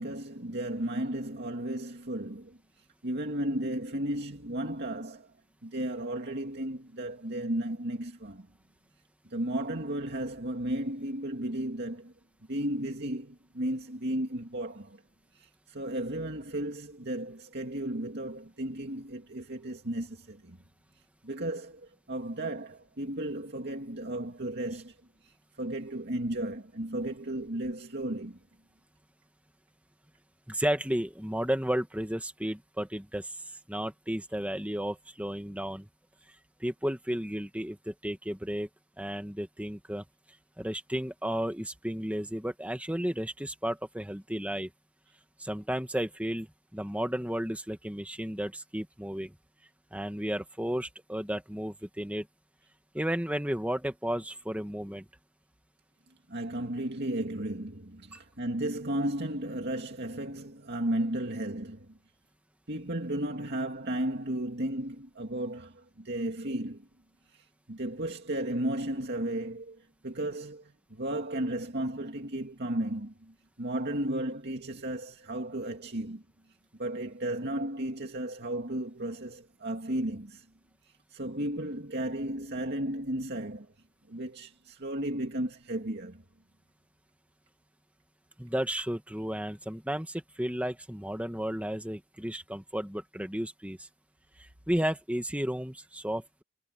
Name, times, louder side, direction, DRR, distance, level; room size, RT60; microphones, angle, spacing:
voice 1, 0.0-2.6 3.0-5.3 5.6-8.5 9.3-12.1 12.5-15.0 15.3-20.6 21.2-25.0 25.2-28.4 56.3-61.9 62.7-66.9 67.3-76.2 76.8-80.5 81.1-83.7 84.1-86.2, right 1 dB, 50° right, 2.4 m, -34 dB
voice 2, 30.5-33.4 33.7-35.9 36.6-38.7 39.0-40.0 40.6-44.7 45.4-46.5 46.7-49.3 49.9-52.3 52.9-55.0 58.1-58.2 88.4-93.9 94.4-96.4, equal, 5° right, 2.0 m, -33 dB
head